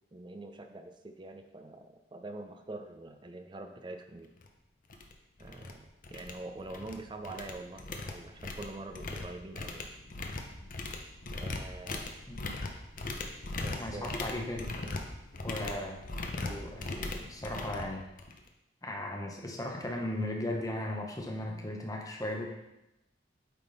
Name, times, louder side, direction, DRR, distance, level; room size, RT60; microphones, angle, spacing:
voice 1, 0.1-4.3 5.4-9.9 11.3-12.2 13.6-14.1, right 2 dB, 25° right, 6 dB, 0.5 m, -45 dB
sound 1, 4.4-4.5 4.9-5.1 5.4-5.7 6.0-7.0 7.2-18.5, left 2 dB, 45° left, 0.6 m, -39 dB
voice 2, 13.8-14.7 15.4-16.0 16.4-18.0 18.8-22.6, left 1 dB, 20° left, 1 dB, 0.9 m, -37 dB
8.4 x 3.7 x 4.0 m, 0.91 s
head